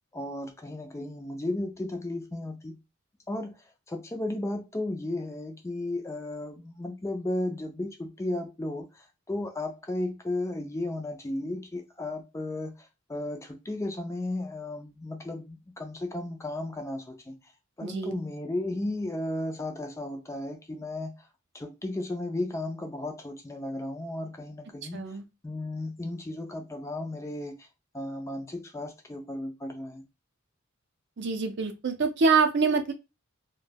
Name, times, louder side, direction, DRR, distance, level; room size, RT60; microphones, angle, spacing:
voice 1, 0.1-2.8 3.3-17.4 17.8-21.3 21.5-25.1 25.4-27.7 27.9-30.0, left 1 dB, 15° left, 0.3 m, -34 dB
voice 2, 17.8-18.2 24.9-25.2 31.2-32.9, right 4 dB, 55° right, 0.5 m, -25 dB
2.2 x 2.1 x 3.3 m
head